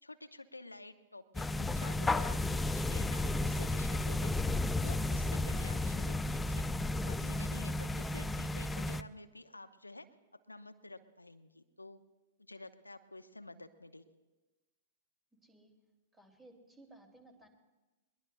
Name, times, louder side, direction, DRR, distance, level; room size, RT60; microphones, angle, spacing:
voice 1, 0.0-4.3 4.8-6.7 7.1-10.1 10.5-12.0 12.4-14.0, left 2 dB, 85° left, 8 dB, 0.8 m, -51 dB
sound 1, 1.3-9.0, left 2 dB, 10° left, 0.4 m, -33 dB
voice 2, 16.1-17.5, right 2 dB, 15° right, 3 dB, 2.8 m, -58 dB
21.5 x 21.5 x 2.3 m, 1.1 s
figure-of-eight pair, 105°, 0 cm